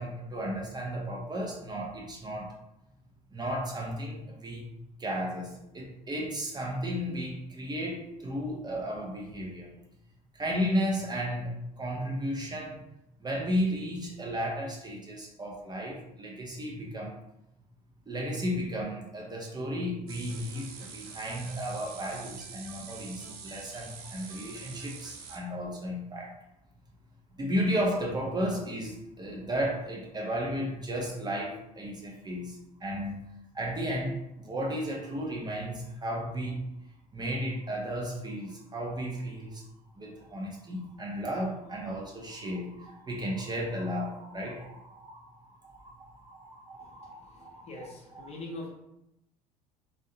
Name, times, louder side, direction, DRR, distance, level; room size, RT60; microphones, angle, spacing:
voice 1, 0.0-2.5 3.3-4.6 5.0-9.7 10.3-12.8 13.2-17.1 18.1-26.3 27.4-33.2 33.5-36.6 37.1-39.6 40.0-48.3, equal, 20° right, -2 dB, 0.5 m, -34 dB
sound 1, 20.1-25.4, right 6 dB, 70° right, 0.4 m, -45 dB
voice 2, 46.8-48.7, left 2 dB, 35° left, -2 dB, 0.7 m, -43 dB
2.5 x 2.1 x 2.7 m, 0.86 s
figure-of-eight pair, 60°, 20 cm